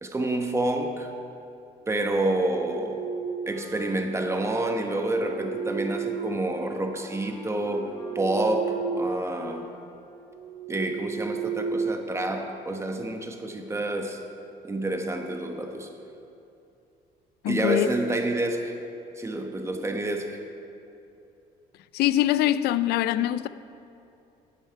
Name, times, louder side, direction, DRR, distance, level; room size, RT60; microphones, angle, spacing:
voice 1, 0.0-1.1 1.9-3.0 3.5-9.6 10.7-14.2 14.6-15.9 17.4-18.8 19.2-20.4, right 1 dB, 15° right, 1.0 m, -28 dB
sound 1, 2.3-3.8 4.8-6.9 7.4-9.3 9.6-9.8 10.3-12.7, right 5 dB, 35° right, 0.6 m, -33 dB
Wind instrument woodwind instrument, 3.4-10.1, equal, 45° left, 2.8 m, -48 dB
voice 2, 17.4-17.9 21.9-23.5, left 13 dB, 70° left, 0.4 m, -23 dB
11.5 x 9.0 x 4.6 m
cardioid pair, 110°, 17 cm